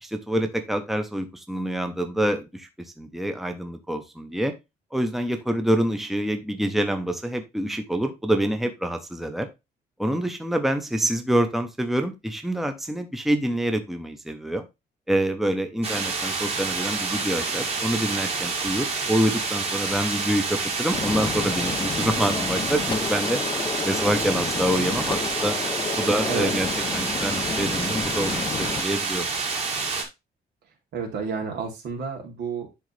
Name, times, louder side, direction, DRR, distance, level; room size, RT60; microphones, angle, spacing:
voice 1, 0.0-4.5 4.9-9.5 10.0-14.6 15.1-23.4 23.8-25.6 26.0-26.7 26.9-29.3, right 1 dB, ahead, 6 dB, 0.8 m, -26 dB
sound 1, 15.8-30.0, right 4 dB, 35° right, 2.1 m, -28 dB
Gunshot gunfire, 20.9-28.8, left 6 dB, 30° left, 0.5 m, -31 dB
voice 2, 30.9-32.7, right 5 dB, 85° right, 1 dB, 2.9 m, -30 dB
10.5 x 3.9 x 3.2 m, 0.23 s
wide cardioid pair, 170°, 17 cm